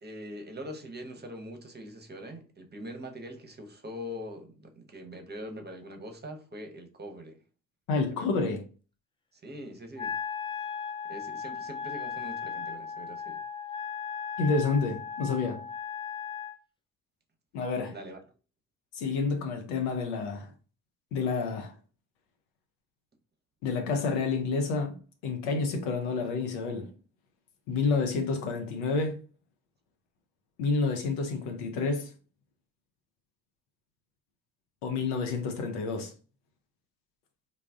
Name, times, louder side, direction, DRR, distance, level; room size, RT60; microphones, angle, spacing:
voice 1, 0.0-7.4 8.1-8.5 9.3-10.1 11.1-13.4 17.9-18.2, equal, 25° right, 0.8 m, -43 dB
voice 2, 7.9-8.6 14.4-15.6 17.5-17.9 18.9-20.5 21.1-21.7 23.6-25.0 25.2-26.9 27.7-29.2 30.6-32.1 34.8-36.1, left 4 dB, 75° left, 0.6 m, -29 dB
Wind instrument woodwind instrument, 10.0-16.6, left 6 dB, 15° left, 0.3 m, -37 dB
2.3 x 2.0 x 3.5 m
hypercardioid pair, 45°, 43 cm